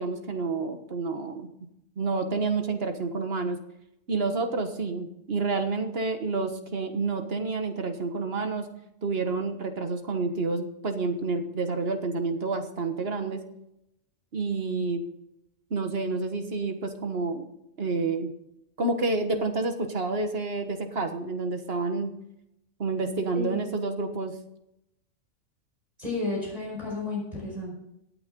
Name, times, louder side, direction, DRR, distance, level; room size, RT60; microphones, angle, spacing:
voice 1, 0.0-1.5 2.0-3.6 4.1-8.7 9.0-13.4 14.3-15.0 15.7-17.4 17.8-18.3 18.8-22.1 22.8-24.3, right 3 dB, 50° right, 6 dB, 1.6 m, -29 dB
voice 2, 23.3-23.6 26.0-27.7, left 3 dB, 30° right, -3 dB, 5.2 m, -32 dB
17.0 x 8.9 x 3.8 m, 0.83 s
omnidirectional pair, 1.4 m